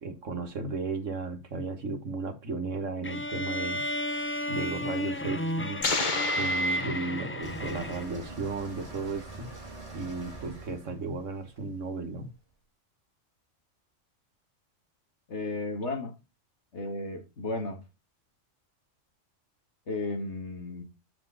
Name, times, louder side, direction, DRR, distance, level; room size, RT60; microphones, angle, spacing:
voice 1, 0.0-4.0 4.5-5.8 6.4-9.5 9.9-12.3, right 3 dB, 75° right, 1.8 m, -34 dB
sound 1, 3.0-8.3, equal, 20° left, 0.3 m, -32 dB
sound 2, 5.8-7.7, left 3 dB, 40° left, 1.3 m, -32 dB
sound 3, 7.4-12.4, right 2 dB, 30° right, 2.6 m, -45 dB
voice 2, 15.3-16.1 16.7-17.8 19.9-20.8, left 2 dB, 60° left, 2.2 m, -34 dB
7.7 x 5.8 x 3.9 m
omnidirectional pair, 1.3 m